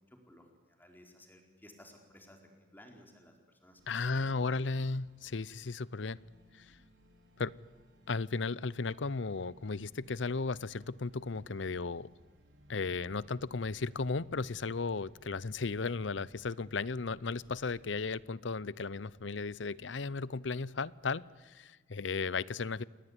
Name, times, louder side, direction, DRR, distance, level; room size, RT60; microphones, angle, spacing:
voice 1, 0.0-4.4, left 1 dB, 10° left, 3 dB, 4.5 m, -57 dB
sound 1, 3.8-21.2, equal, 75° right, 5.5 m, -63 dB
voice 2, 3.9-6.2 6.5-6.8 7.4-7.5 8.1-12.1 12.7-22.8, left 4 dB, 80° left, 21 dB, 0.7 m, -35 dB
28.0 x 20.0 x 9.8 m, 1.5 s
head